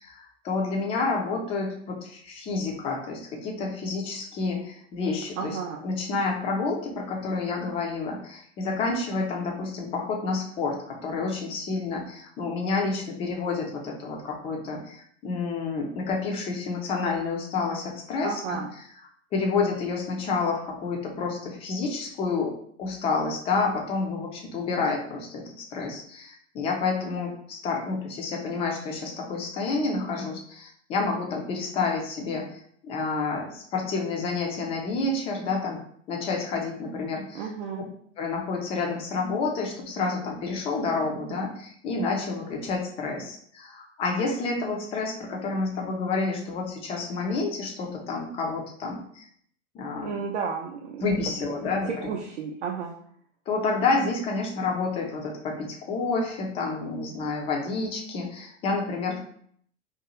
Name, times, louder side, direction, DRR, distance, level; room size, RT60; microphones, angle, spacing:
voice 1, 0.0-5.6 5.8-18.6 19.3-22.5 22.8-35.8 36.1-37.5 38.2-49.2 49.7-50.1 51.0-52.1 53.5-59.3, left 4 dB, 15° left, 1 dB, 0.3 m, -29 dB
voice 2, 5.4-5.8 18.2-18.7 37.3-37.9 50.0-51.0 51.4-51.6 51.9-53.0, right 6 dB, 60° right, 1 dB, 0.5 m, -32 dB
2.5 x 2.3 x 2.8 m, 0.62 s
figure-of-eight pair, 85°, 37 cm